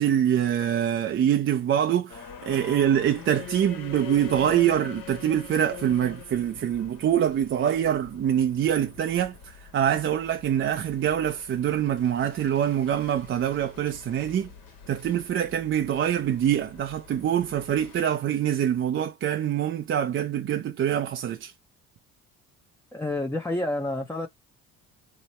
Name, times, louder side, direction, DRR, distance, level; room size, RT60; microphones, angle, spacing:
voice 1, 0.0-14.5 14.9-21.5, right 10 dB, 35° right, 0.5 m, -25 dB
sound 1, 2.1-18.0, left 8 dB, 70° left, 1.4 m, -45 dB
voice 2, 22.9-24.3, left 1 dB, 10° left, 0.6 m, -29 dB
2.9 x 2.1 x 4.1 m
supercardioid pair, 90°, 34 cm